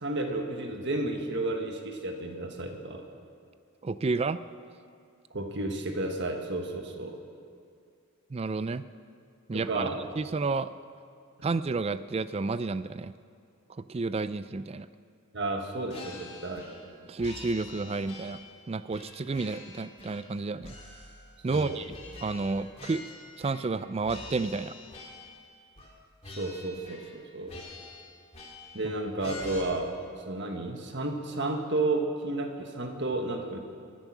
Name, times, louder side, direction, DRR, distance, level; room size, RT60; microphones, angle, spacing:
voice 1, 0.0-3.0 5.3-7.2 9.5-10.0 15.3-16.7 21.5-21.8 26.3-27.5 28.7-29.9 30.2-33.6, right 2 dB, 55° right, 3 dB, 1.5 m, -32 dB
voice 2, 3.8-4.4 8.3-8.8 9.5-9.9 10.2-10.7 11.4-13.1 13.7-14.9 17.0-18.4 18.7-20.7 21.4-21.9 22.2-23.0 23.4-24.8, right 3 dB, 25° right, 14 dB, 0.3 m, -31 dB
sound 1, 15.9-16.9 17.2-18.6 18.9-20.3 20.6-23.8 24.0-25.4 25.8-26.0 26.2-27.2 27.5-28.8 29.2-29.6, left 2 dB, 30° left, 2.5 m, -46 dB
23.5 x 9.2 x 6.1 m, 2.4 s
head